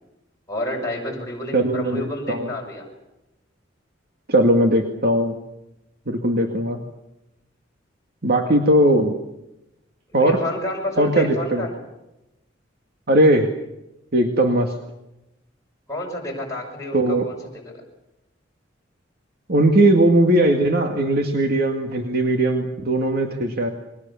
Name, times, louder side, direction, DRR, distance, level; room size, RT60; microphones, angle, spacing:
voice 1, 0.5-2.9 6.4-6.6 10.1-11.7 15.9-17.8, left 1 dB, 15° left, -2 dB, 6.2 m, -30 dB
voice 2, 1.5-2.5 4.3-5.4 6.1-6.8 8.2-9.1 10.1-10.4 11.0-11.6 13.1-13.5 14.1-14.7 16.9-17.3 19.5-23.7, right 1 dB, 55° right, 3 dB, 2.2 m, -19 dB
29.0 x 22.5 x 7.2 m, 0.92 s
head